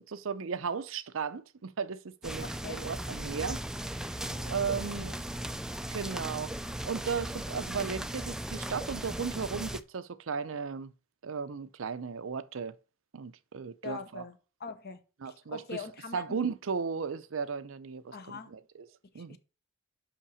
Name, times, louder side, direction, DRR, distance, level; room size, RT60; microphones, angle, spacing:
voice 1, 0.0-3.6 4.2-5.2 5.9-6.5 6.8-10.9 11.2-12.8 13.1-14.2 15.2-15.8 16.1-18.9 19.1-19.4, right 5 dB, 70° right, 0.6 m, -36 dB
sound 1, 2.2-9.8, right 1 dB, 5° right, 0.4 m, -37 dB
voice 2, 2.4-2.9 4.3-5.1 13.8-15.0 15.2-16.4 18.1-18.6 19.1-19.4, left 4 dB, 50° left, 1.0 m, -43 dB
5.8 x 5.6 x 7.0 m
head